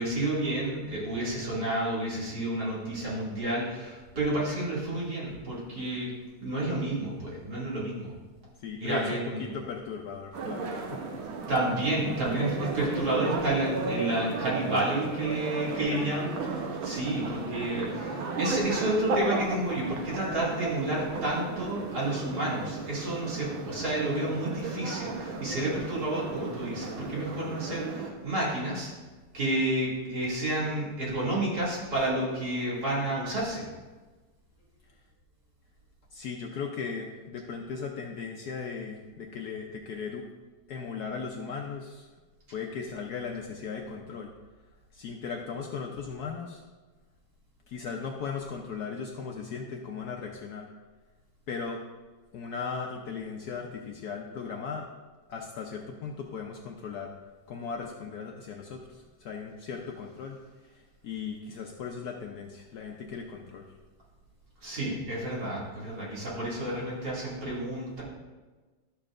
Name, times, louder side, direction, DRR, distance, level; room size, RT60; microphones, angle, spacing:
voice 1, 0.0-6.1 6.4-8.1 8.8-9.4 11.5-16.4 16.8-28.9 29.3-33.7 64.6-68.0, right 1 dB, 55° right, -7 dB, 2.9 m, -30 dB
voice 2, 8.6-11.1 12.8-13.1 15.7-16.3 36.1-40.3 40.7-42.1 42.5-44.3 44.9-46.6 47.7-50.7 51.5-51.8 52.3-54.9 55.3-57.1 57.5-60.4 60.7-63.6, left 5 dB, 70° left, 1 dB, 1.0 m, -37 dB
sound 1, 10.3-28.1, right 4 dB, 90° right, 1.7 m, -35 dB
12.0 x 6.9 x 2.4 m, 1.3 s
omnidirectional pair, 2.1 m